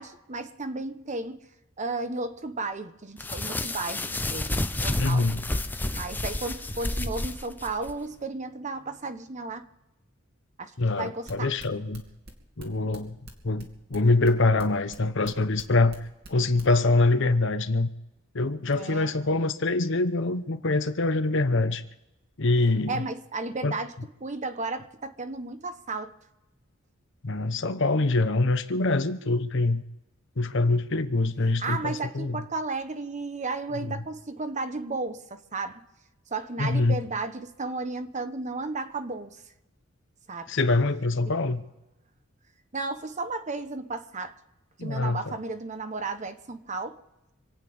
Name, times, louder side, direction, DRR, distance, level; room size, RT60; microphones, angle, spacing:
voice 1, 0.0-1.5 1.8-5.3 5.9-9.6 10.6-11.5 18.7-19.5 22.9-23.9 24.2-26.1 31.6-35.8 36.3-39.4 40.3-40.5 42.7-44.3 44.8-47.0, right 3 dB, 35° right, 1.0 m, -34 dB
sound 1, 3.2-7.9, left 1 dB, 10° left, 0.6 m, -30 dB
voice 2, 5.0-5.4 10.8-12.0 12.6-13.2 13.4-16.0 16.3-17.9 18.3-21.8 22.4-23.0 23.6-23.7 27.2-29.8 30.4-32.4 36.6-37.0 40.5-41.6 44.8-45.3, left 2 dB, 65° left, 1.0 m, -24 dB
sound 2, 11.3-16.7, right 1 dB, 55° right, 2.6 m, -44 dB
27.0 x 9.0 x 5.4 m
head